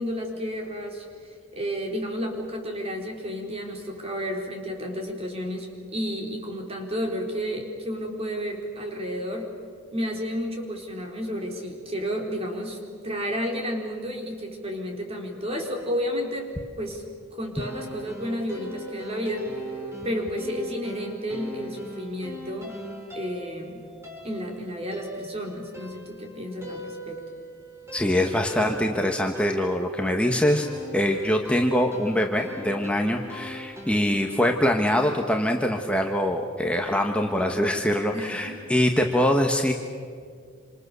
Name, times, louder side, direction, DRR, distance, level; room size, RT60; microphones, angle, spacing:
voice 1, 0.0-9.5 9.9-12.8 13.0-17.0 17.4-19.5 20.0-22.8 23.1-23.9 24.2-27.2 33.9-34.2 38.1-38.7, equal, 30° right, 1 dB, 4.2 m, -32 dB
sound 1, 17.6-34.0, right 1 dB, 15° right, 4.7 m, -39 dB
voice 2, 27.9-30.7 30.9-39.7, left 1 dB, 5° left, 2 dB, 1.3 m, -23 dB
27.5 x 26.5 x 6.9 m, 2.2 s
head